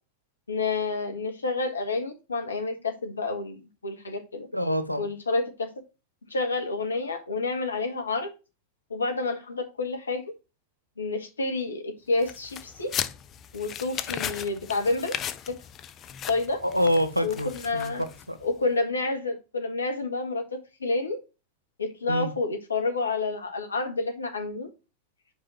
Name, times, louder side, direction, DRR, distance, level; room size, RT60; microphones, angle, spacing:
voice 1, 0.5-4.5 5.0-5.7 6.3-8.3 8.9-10.2 11.0-12.9 13.5-15.2 15.5-15.6 16.3-16.6 17.2-18.0 18.4-20.5 20.8-21.2 21.8-24.7, left 3 dB, 75° left, 1.7 m, -29 dB
voice 2, 4.5-5.1 16.6-18.4 22.1-22.3, left 1 dB, 90° right, 0.9 m, -26 dB
sound 1, 12.2-18.4, left 9 dB, 30° left, 0.6 m, -36 dB
5.5 x 5.0 x 6.5 m
figure-of-eight pair, 90°, 0 cm